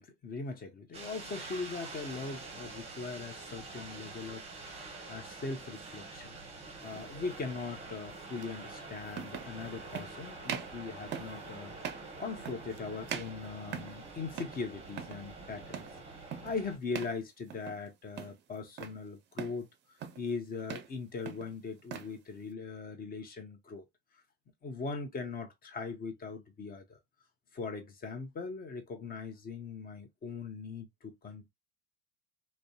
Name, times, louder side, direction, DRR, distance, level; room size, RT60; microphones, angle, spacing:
voice 1, 0.0-4.4 4.8-6.4 6.8-11.7 12.2-15.8 16.4-19.7 20.2-23.9 24.6-27.0 27.5-31.5, left 4 dB, 30° left, 0.8 m, -40 dB
sound 1, 0.9-16.8, right 3 dB, 20° right, 0.9 m, -46 dB
sound 2, 6.9-7.1 8.4-8.5 9.1-9.5 9.9-10.1 10.4-10.8 11.1-11.4 11.8-12.1 12.4-12.8 13.1-14.0 14.3-14.6 14.9-15.2 15.7-16.0 16.3-16.6 16.9-17.2 17.5-17.9 18.2-19.0 19.4-19.6 20.0-20.3 20.6-20.9 21.2-22.1, right 8 dB, 35° right, 0.5 m, -41 dB
2.5 x 2.2 x 2.3 m
hypercardioid pair, 80°, 31 cm